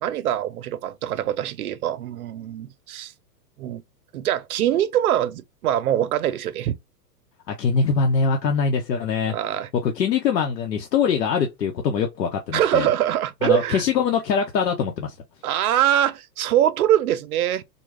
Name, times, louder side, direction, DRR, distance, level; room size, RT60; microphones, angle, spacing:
voice 1, 0.0-3.1 3.6-3.8 4.1-6.8 9.3-9.7 12.5-13.8 15.4-17.6, right 11 dB, 65° right, 0.6 m, -23 dB
voice 2, 7.5-9.3 9.8-12.9 13.4-15.1, left 6 dB, 80° left, 1.0 m, -23 dB
3.8 x 2.3 x 3.5 m
hypercardioid pair, 165°, 49 cm